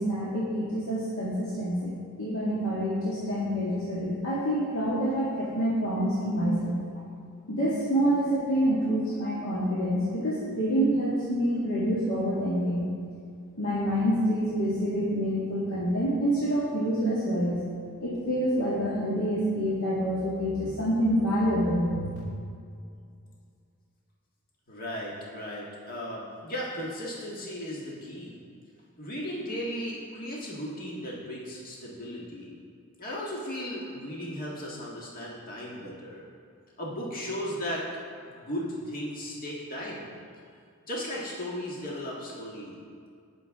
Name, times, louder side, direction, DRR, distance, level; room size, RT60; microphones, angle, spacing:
voice 1, 0.0-1.9 2.2-6.8 7.5-12.9 13.6-17.6 18.0-22.1, equal, 85° left, -8 dB, 2.0 m, -27 dB
voice 2, 24.7-28.4 29.0-32.5 33.0-36.2 36.8-40.1 40.8-42.8, equal, 40° left, -5 dB, 1.6 m, -36 dB
19.0 x 6.7 x 3.7 m, 2.3 s
head